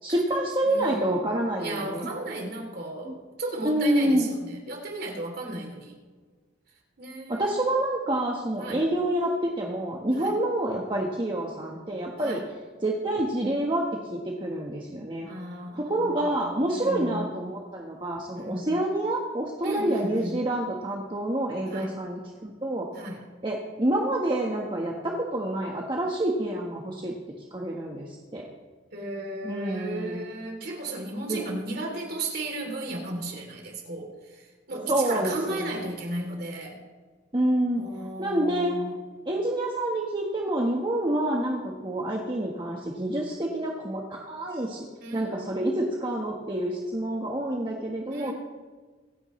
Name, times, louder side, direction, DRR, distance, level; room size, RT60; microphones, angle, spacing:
voice 1, 0.0-2.1 3.0-3.1 3.6-4.3 7.3-12.4 12.8-13.9 14.1-15.3 15.8-22.9 23.4-27.1 27.5-28.5 29.4-30.2 31.3-31.4 34.9-35.7 37.3-37.8 38.2-38.8 39.2-44.9 45.1-48.3, right 1 dB, 25° right, -1 dB, 1.2 m, -27 dB
voice 2, 0.6-1.2 1.6-6.0 7.0-7.5 8.6-8.8 10.2-10.4 12.2-12.5 15.2-17.3 18.3-18.8 19.6-20.4 21.7-22.0 22.9-23.2 28.9-36.8 37.7-38.9 45.0-45.8 48.1-48.3, right 2 dB, 55° right, 1 dB, 3.1 m, -35 dB
24.5 x 9.9 x 3.2 m, 1.4 s
head